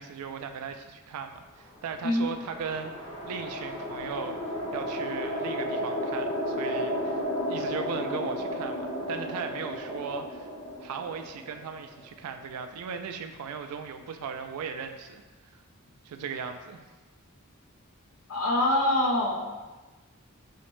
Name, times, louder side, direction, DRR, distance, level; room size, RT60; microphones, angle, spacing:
voice 1, 0.0-2.9 3.3-4.4 4.7-7.2 7.5-10.5 10.8-15.2 16.0-16.8, right 6 dB, 85° right, 6 dB, 0.3 m, -37 dB
sound 1, 1.8-12.2, equal, 25° left, 0.4 m, -33 dB
voice 2, 18.3-19.5, left 1 dB, 70° left, 0 dB, 0.6 m, -25 dB
4.8 x 2.1 x 3.0 m, 1.2 s
head